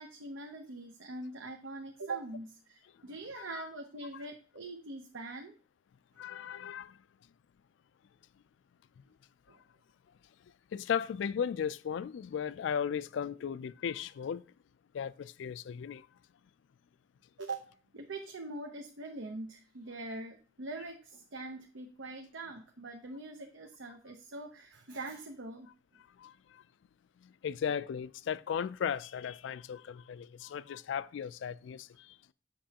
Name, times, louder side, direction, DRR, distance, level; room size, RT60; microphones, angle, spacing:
voice 1, 0.0-5.5 9.5-9.6 17.4-25.7, right 2 dB, 80° right, 0.7 m, -43 dB
voice 2, 6.2-7.0 10.7-14.4 14.9-16.1 26.2-26.6 27.2-32.1, left 7 dB, 70° left, 0.3 m, -36 dB
7.7 x 6.1 x 2.8 m
head